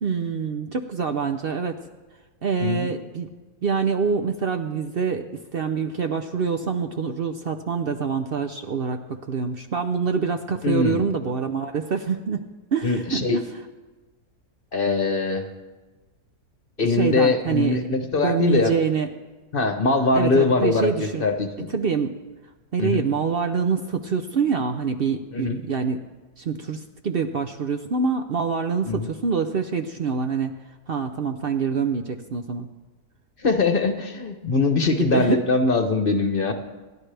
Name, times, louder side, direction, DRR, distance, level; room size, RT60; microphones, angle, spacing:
voice 1, 0.0-1.8 2.4-3.3 3.6-12.5 12.7-13.4 16.8-17.8 18.2-19.1 20.1-21.2 21.7-22.2 22.7-26.0 26.4-30.6 30.9-32.7 34.9-35.4, right 5 dB, 55° right, 6 dB, 0.6 m, -25 dB
voice 2, 10.6-11.0 12.8-13.4 14.7-15.5 16.8-18.7 19.5-21.7 22.8-23.0 25.3-25.6 28.9-29.1 33.4-36.5, left 3 dB, 40° left, 6 dB, 1.1 m, -22 dB
27.0 x 11.5 x 3.4 m, 1.2 s
omnidirectional pair, 1.7 m